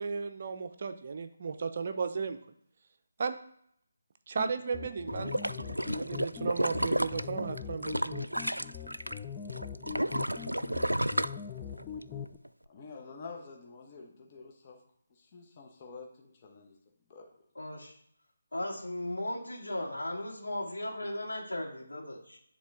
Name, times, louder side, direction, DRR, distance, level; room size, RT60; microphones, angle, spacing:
voice 1, 0.0-2.4 3.2-3.4 4.3-5.3 5.9-8.3, right 5 dB, 45° right, 8 dB, 0.5 m, -35 dB
sound 1, 4.4-12.4, left 7 dB, 15° left, 0.4 m, -42 dB
sound 2, 5.1-9.2 9.5-12.0 12.4-12.5, right 1 dB, 90° right, 0.3 m, -32 dB
voice 2, 12.7-14.8 15.2-16.7 17.1-17.3, left 4 dB, 30° left, 1 dB, 1.0 m, -48 dB
voice 3, 17.5-17.9 18.5-22.4, left 1 dB, 75° left, -2 dB, 2.3 m, -36 dB
9.5 x 3.7 x 3.7 m, 0.70 s
figure-of-eight pair, 150°, 0 cm